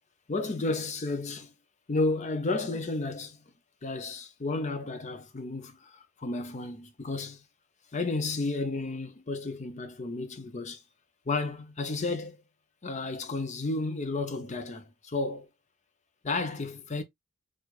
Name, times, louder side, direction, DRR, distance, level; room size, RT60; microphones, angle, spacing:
voice 1, 0.3-1.5 1.9-3.4 3.8-7.4 7.9-10.8 11.3-12.4 12.8-15.5 16.2-17.0, left 3 dB, 35° left, 0.6 m, -32 dB
4.6 x 2.4 x 2.3 m
head